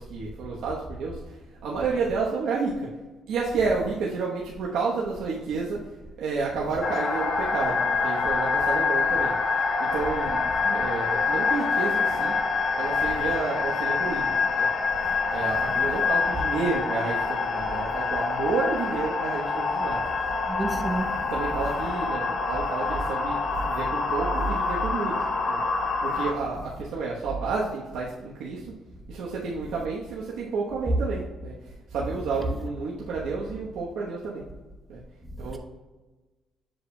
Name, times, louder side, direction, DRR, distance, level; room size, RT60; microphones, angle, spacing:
voice 1, 0.0-1.4 1.6-2.9 3.3-5.8 6.2-12.3 12.7-14.3 14.6-14.7 15.3-20.0 21.3-23.4 23.7-25.2 25.5-25.6 26.0-28.7 29.1-34.4 34.9-35.0 35.4-35.6, right 4 dB, 85° right, 1.1 m, -30 dB
sound 1, 6.8-26.3, left 4 dB, 40° left, 0.8 m, -26 dB
voice 2, 20.4-21.3, right 2 dB, 10° right, 0.6 m, -30 dB
7.5 x 7.1 x 2.3 m
cardioid pair, 170°, 0 cm